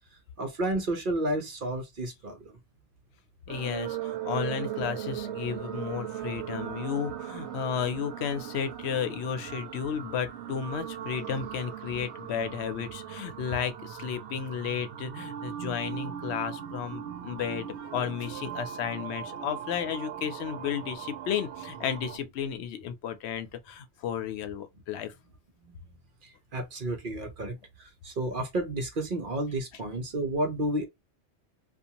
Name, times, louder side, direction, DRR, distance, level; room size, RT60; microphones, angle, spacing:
voice 1, 0.4-2.6 17.4-17.5 17.8-17.9 25.6-25.8 26.2-30.8, right 1 dB, 55° right, 0.9 m, -31 dB
voice 2, 3.5-25.1, left 8 dB, 75° left, 0.8 m, -33 dB
sound 1, 3.5-22.2, right 10 dB, 80° right, 0.9 m, -38 dB
2.6 x 2.2 x 2.8 m
omnidirectional pair, 1.1 m